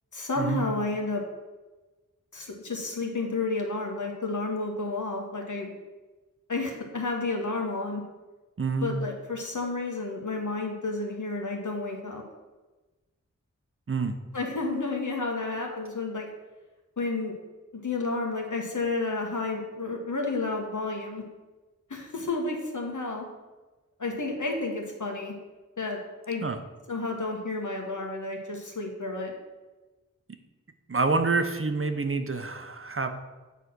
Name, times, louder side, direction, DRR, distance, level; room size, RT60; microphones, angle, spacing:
voice 1, 0.1-1.2 2.3-5.7 6.5-8.0 8.8-12.2 14.3-16.3 17.0-17.3 17.7-21.2 21.9-23.3 24.0-25.3 25.8-26.0 26.3-26.4 26.9-29.3, left 3 dB, 70° left, 1 dB, 1.5 m, -31 dB
voice 2, 8.6-8.9 13.9-14.2 26.4-26.6 30.9-33.1, right 4 dB, 45° right, 7 dB, 0.8 m, -27 dB
8.1 x 4.1 x 6.2 m, 1.2 s
wide cardioid pair, 45°, 31 cm